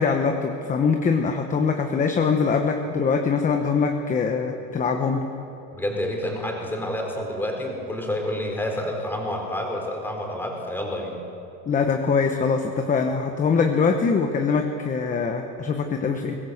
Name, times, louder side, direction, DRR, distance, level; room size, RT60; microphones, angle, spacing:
voice 1, 0.0-5.3 11.7-16.4, left 5 dB, 20° left, 4 dB, 1.1 m, -23 dB
voice 2, 5.7-11.2, left 1 dB, 5° left, 1 dB, 3.8 m, -29 dB
22.5 x 19.5 x 8.0 m, 2.8 s
cardioid pair, 165°, 37 cm